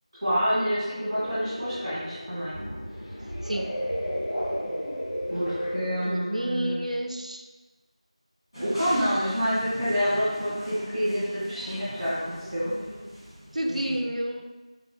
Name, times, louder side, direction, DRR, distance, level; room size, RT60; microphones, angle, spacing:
voice 1, 0.2-2.5 5.3-6.8 8.6-12.7 13.7-13.9, equal, 5° right, -20 dB, 0.9 m, -28 dB
sound 1, 1.1-6.2, equal, 70° left, 1.4 m, -33 dB
voice 2, 3.4-3.8 6.1-7.5 13.5-14.5, right 1 dB, 90° right, 5 dB, 0.4 m, -30 dB
sound 2, 8.5-14.0, equal, 40° left, 1.3 m, -40 dB
4.3 x 2.5 x 2.3 m, 1.2 s
figure-of-eight pair, 180°, 4 cm